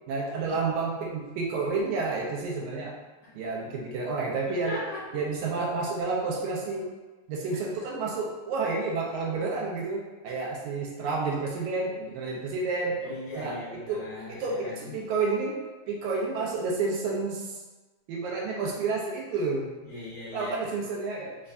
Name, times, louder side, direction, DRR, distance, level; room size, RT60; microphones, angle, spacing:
voice 1, 0.1-3.0 3.4-4.8 5.1-6.9 7.3-13.0 13.4-13.6 13.9-14.0 14.3-17.6 18.1-19.7 20.3-21.4, right 3 dB, 80° right, -2 dB, 2.0 m, -30 dB
voice 2, 4.5-5.2 10.3-10.4 13.0-14.9 19.8-20.5, left 2 dB, 65° left, -10 dB, 1.9 m, -39 dB
5.2 x 2.2 x 2.5 m, 1.2 s
omnidirectional pair, 3.5 m